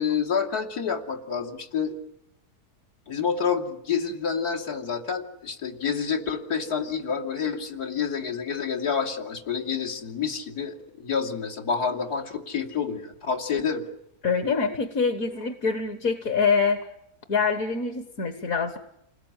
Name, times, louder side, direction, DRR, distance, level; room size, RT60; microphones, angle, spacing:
voice 1, 0.0-2.0 3.1-13.8, left 6 dB, 90° left, -1 dB, 3.4 m, -28 dB
voice 2, 14.2-16.9 17.3-18.8, left 5 dB, 65° left, 8 dB, 1.9 m, -25 dB
29.0 x 20.5 x 9.0 m, 0.78 s
omnidirectional pair, 1.6 m